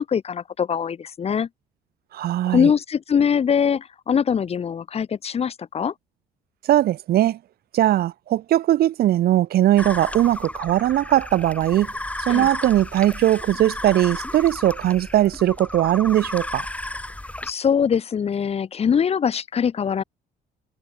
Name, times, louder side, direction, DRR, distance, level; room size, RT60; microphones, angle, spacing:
voice 1, 0.0-1.5 2.5-5.9 12.3-12.5 17.4-20.0, left 7 dB, 35° left, 1.5 m, -22 dB
voice 2, 2.1-2.7 6.6-7.4 7.7-11.9 12.2-16.7, right 13 dB, 65° right, 2.3 m, -20 dB
sound 1, 9.8-17.5, left 1 dB, 10° left, 7.5 m, -33 dB
cardioid pair, 110°, 17 cm